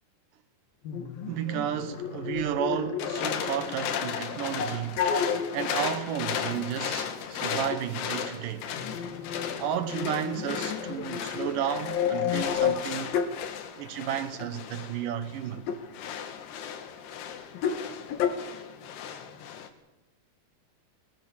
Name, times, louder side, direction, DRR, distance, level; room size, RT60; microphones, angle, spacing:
sound 1, 0.9-4.0 4.6-5.7 6.6-6.7 7.6-7.8 8.7-13.5 14.3-14.5 15.6-15.8 17.5-17.8 18.1-18.3, left 7 dB, 65° left, 3.3 m, -31 dB
voice 1, 1.3-5.1 5.5-8.7 9.6-13.1 13.8-15.6, right 10 dB, 70° right, 2.3 m, -32 dB
sound 2, 3.0-19.7, left 8 dB, 80° left, 3.6 m, -36 dB
23.0 x 18.0 x 7.2 m
omnidirectional pair, 4.7 m